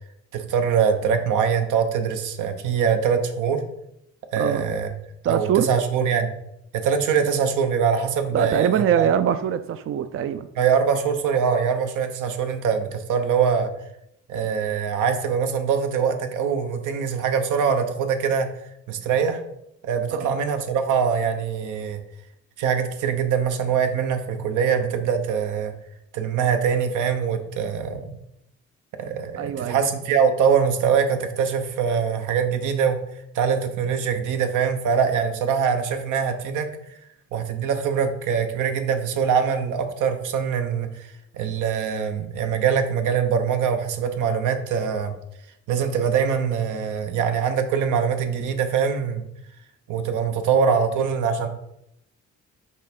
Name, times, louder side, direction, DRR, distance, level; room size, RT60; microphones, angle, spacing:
voice 1, 0.3-3.6 4.3-4.9 5.3-6.3 6.7-9.1 10.6-13.7 14.3-18.5 18.9-19.4 19.8-22.0 22.6-25.7 26.1-28.1 29.0-33.0 33.3-36.7 37.3-45.1 45.7-49.2 49.9-51.5, right 7 dB, 85° right, 7 dB, 0.9 m, -23 dB
voice 2, 4.4-4.7 5.2-5.7 8.3-10.5 20.1-20.3 29.4-29.8, right 9 dB, 45° right, 11 dB, 0.4 m, -23 dB
5.5 x 3.3 x 5.2 m, 0.80 s
cardioid pair, 90°, 30 cm